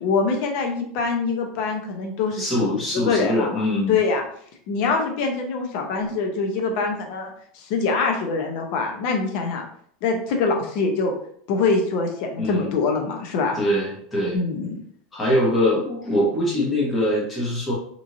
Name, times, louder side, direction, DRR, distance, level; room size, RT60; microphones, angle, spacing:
voice 1, 0.0-4.2 4.7-9.7 10.0-11.1 11.5-13.6 14.3-14.7, left 4 dB, 55° left, 3 dB, 0.6 m, -24 dB
voice 2, 2.3-4.0 12.4-12.7 13.5-14.4 15.1-17.7, left 1 dB, 15° left, -5 dB, 0.9 m, -23 dB
3.0 x 2.5 x 2.5 m, 0.63 s
supercardioid pair, 165°, 0 cm